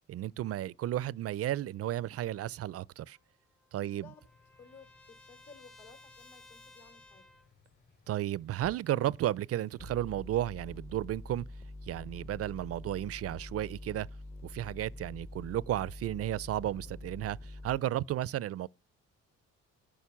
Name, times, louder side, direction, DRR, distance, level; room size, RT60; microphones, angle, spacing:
voice 1, 0.1-3.2 3.7-4.1 8.1-11.5 11.9-14.1 14.4-18.7, right 13 dB, 50° right, 0.4 m, -33 dB
Trumpet, 3.1-7.5, left 2 dB, 85° left, 2.5 m, -58 dB
voice 2, 3.7-4.2 4.6-7.3, left 4 dB, 60° left, 3.7 m, -56 dB
Insect, 4.2-10.0, left 4 dB, 35° left, 3.3 m, -65 dB
sound 1, 8.6-8.7 9.8-17.8, left 2 dB, 20° left, 0.7 m, -46 dB
11.0 x 5.3 x 7.1 m
cardioid pair, 90°, 30 cm